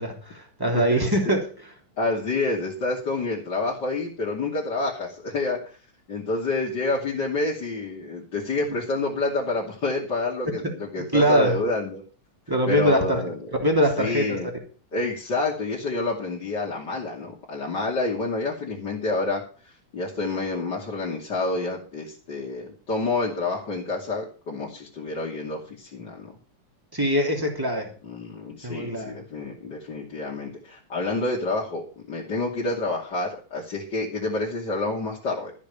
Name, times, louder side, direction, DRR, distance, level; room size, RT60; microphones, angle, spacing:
voice 1, 0.0-1.5 10.6-11.6 12.5-13.2 13.6-14.4 26.9-27.9 28.6-29.2, equal, 5° right, 1 dB, 2.8 m, -23 dB
voice 2, 2.0-5.6 6.1-12.0 12.7-13.4 14.0-14.5 14.9-26.4 28.0-35.5, left 3 dB, 35° left, -5 dB, 3.1 m, -28 dB
14.0 x 7.1 x 6.9 m, 0.37 s
omnidirectional pair, 3.6 m